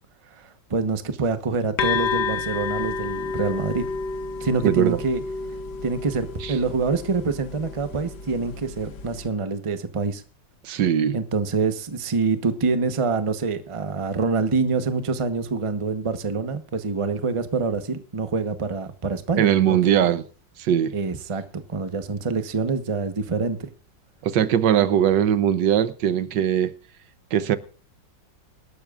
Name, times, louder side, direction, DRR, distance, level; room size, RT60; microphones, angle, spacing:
voice 1, 0.4-3.8 4.4-5.2 5.8-10.2 11.1-20.1 20.9-23.7, right 4 dB, 25° right, 0.7 m, -26 dB
sound 1, 1.8-9.3, left 5 dB, 65° left, 1.8 m, -30 dB
voice 2, 4.6-5.0 6.4-6.5 10.6-11.2 19.4-20.2 20.6-21.0 24.2-26.7 27.3-27.6, right 9 dB, 75° right, 1.4 m, -20 dB
24.5 x 12.0 x 2.4 m
omnidirectional pair, 2.0 m